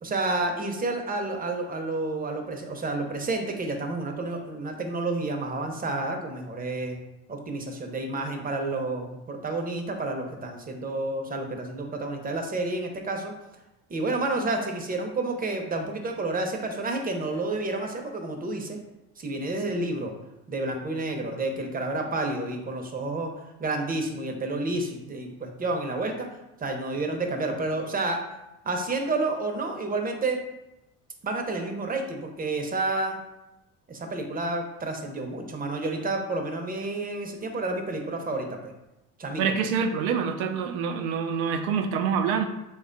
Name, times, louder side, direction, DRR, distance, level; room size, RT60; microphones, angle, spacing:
voice 1, 0.0-7.0 7.3-13.3 13.9-18.8 19.2-20.1 20.5-23.3 23.6-26.3 26.6-28.2 28.6-30.4 31.2-33.2 33.9-38.7 39.2-39.4, right 2 dB, 20° right, 3 dB, 0.6 m, -30 dB
voice 2, 39.4-42.5, right 6 dB, 85° right, 7 dB, 0.5 m, -26 dB
3.4 x 2.3 x 3.8 m, 0.94 s
supercardioid pair, 80°, 41 cm